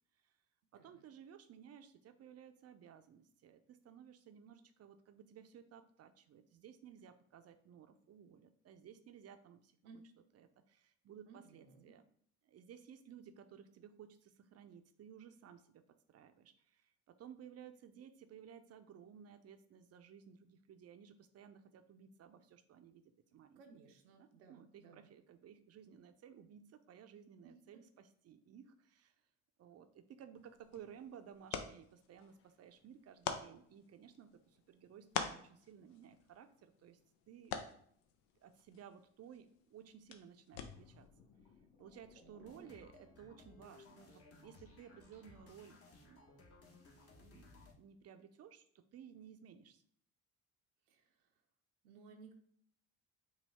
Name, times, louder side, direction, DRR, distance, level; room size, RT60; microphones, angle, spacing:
voice 1, 0.7-10.0 10.3-12.0 12.4-15.8 16.1-23.0 23.3-23.9 24.2-29.1 29.6-37.0 37.3-37.6 38.4-41.1 41.8-46.2 47.1-49.8, right 8 dB, 40° right, 10 dB, 0.5 m, -57 dB
voice 2, 11.3-11.9 23.3-25.1 27.4-27.8 42.2-42.8 50.9-51.3 51.8-52.3, right 4 dB, 80° right, 3 dB, 0.7 m, -60 dB
sound 1, 30.3-41.1, left 7 dB, 80° left, 0.6 m, -47 dB
sound 2, 40.5-44.1 44.5-44.7, left 6 dB, 60° left, 1.4 m, -63 dB
sound 3, 42.4-47.7, left 3 dB, 40° left, 1.1 m, -61 dB
5.2 x 2.3 x 3.5 m, 0.62 s
hypercardioid pair, 60°, 37 cm